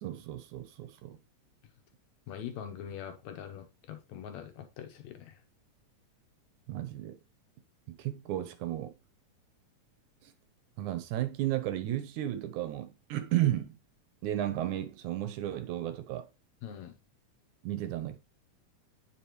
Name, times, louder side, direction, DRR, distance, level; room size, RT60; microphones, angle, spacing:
voice 1, 0.0-1.2 6.7-7.2 7.9-8.9 10.2-10.3 10.8-13.8 14.2-16.3 17.6-18.2, right 13 dB, 80° right, 2.2 m, -33 dB
voice 2, 2.3-5.4 16.6-17.0, left 9 dB, 70° left, 2.1 m, -43 dB
8.7 x 5.2 x 3.0 m
omnidirectional pair, 3.5 m